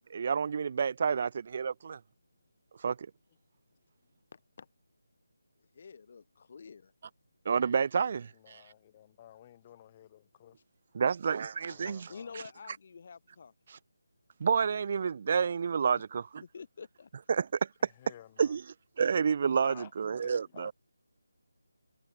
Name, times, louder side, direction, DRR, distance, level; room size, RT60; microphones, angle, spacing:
voice 1, 0.0-2.0 2.8-3.0 7.5-8.6 10.9-12.1 13.7-13.8 14.4-16.4 17.3-17.6 18.4-18.7 19.0-20.7, right 6 dB, 40° right, 1.7 m, -29 dB
voice 2, 4.3-4.7 5.7-6.9 11.8-13.5 15.9-16.0 16.4-17.1, left 5 dB, 40° left, 3.1 m, -48 dB
voice 3, 8.4-10.6 11.7-12.4 18.0-18.5 19.6-19.9 20.2-20.7, left 11 dB, 25° left, 2.1 m, -53 dB
figure-of-eight pair, 160°, 0 cm